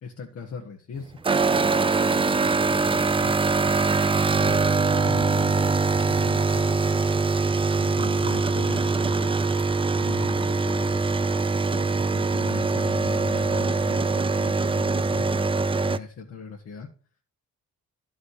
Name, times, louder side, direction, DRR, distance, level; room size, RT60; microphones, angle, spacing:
voice 1, 0.0-1.7 2.7-3.4 4.3-4.6 5.0-5.7 6.1-7.1 7.8-9.6 9.9-15.5 15.8-16.9, left 5 dB, 55° left, 2 dB, 1.4 m, -40 dB
sound 1, 1.2-16.0, right 4 dB, 20° right, 0.4 m, -23 dB
11.5 x 5.4 x 4.8 m, 0.39 s
cardioid pair, 90°, 30 cm